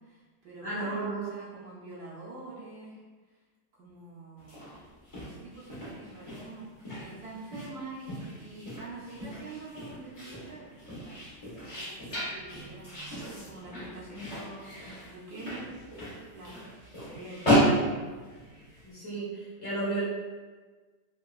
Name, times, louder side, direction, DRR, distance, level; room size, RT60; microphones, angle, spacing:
voice 1, 0.0-3.0 3.7-4.8 5.2-6.7 7.0-15.8 16.3-16.6 17.0-17.8, right 2 dB, 70° right, -6 dB, 1.1 m, -46 dB
voice 2, 0.6-1.3 18.8-20.0, right 2 dB, 40° left, -11 dB, 1.3 m, -33 dB
sound 1, 4.4-18.9, equal, 55° left, 0.3 m, -33 dB
3.6 x 2.2 x 2.3 m, 1.4 s
omnidirectional pair, 1.9 m